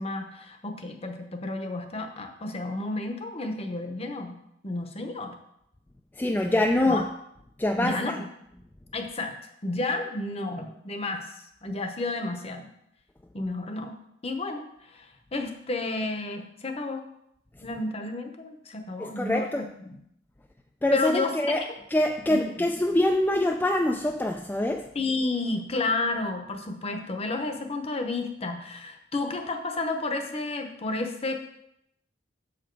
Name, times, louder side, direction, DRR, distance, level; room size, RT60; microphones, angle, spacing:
voice 1, 0.0-4.4 4.6-5.3 6.9-7.0 7.8-8.3 8.9-9.3 9.6-11.3 11.6-12.7 13.3-14.0 14.2-14.7 14.9-17.0 17.6-20.0 20.9-21.7 22.3-22.5 24.9-31.4, left 2 dB, 35° left, 6 dB, 0.8 m, -31 dB
voice 2, 6.2-7.1 7.6-8.2 19.0-19.6 20.8-21.6 21.9-24.8, left 1 dB, 10° left, 2 dB, 0.3 m, -24 dB
6.9 x 5.0 x 4.6 m, 0.78 s
head